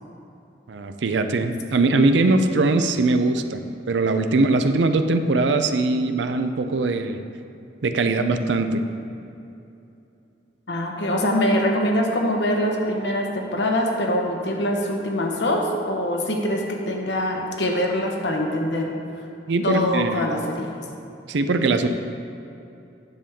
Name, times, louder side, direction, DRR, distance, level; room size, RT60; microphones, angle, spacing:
voice 1, 0.7-3.6 3.9-7.2 7.8-8.8 19.5-20.2 21.3-21.9, right 3 dB, 90° right, 8 dB, 0.5 m, -21 dB
voice 2, 10.7-19.3 19.6-20.7, left 1 dB, 80° left, 1 dB, 1.1 m, -24 dB
10.0 x 6.9 x 3.6 m, 2.7 s
head